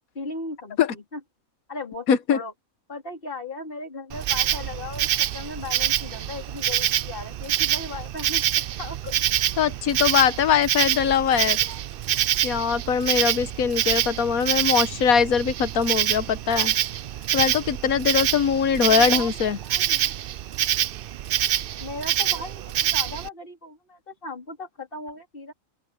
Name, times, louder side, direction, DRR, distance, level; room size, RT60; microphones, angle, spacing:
voice 1, 0.1-1.2 1.7-2.5 2.9-8.4 8.8-9.6 11.3-11.8 18.9-19.3 19.6-20.0 21.8-25.5, left 2 dB, 40° left, 4.1 m, -37 dB
voice 2, 2.1-2.4 9.6-11.6 12.4-16.7 17.3-19.6, left 7 dB, 85° left, 1.5 m, -22 dB
Insect, 4.1-23.3, right 12 dB, 75° right, 0.5 m, -26 dB
open air
omnidirectional pair, 1.5 m